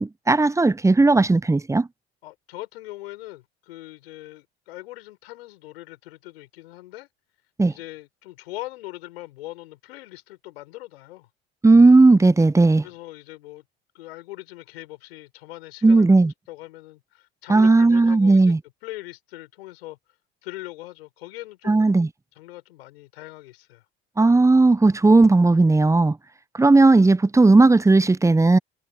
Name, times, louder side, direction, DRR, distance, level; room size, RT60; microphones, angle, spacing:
voice 1, 0.0-1.9 7.6-7.7 11.6-12.8 15.8-16.3 17.5-18.6 21.7-22.1 24.2-26.2 26.6-28.6, right 3 dB, 10° right, 0.8 m, -16 dB
voice 2, 2.2-7.1 7.7-11.3 12.8-13.6 13.9-16.1 16.5-18.5 18.8-20.0 20.4-21.8 22.4-23.8, left 17 dB, 75° left, 5.5 m, -41 dB
hypercardioid pair, 60°, 31 cm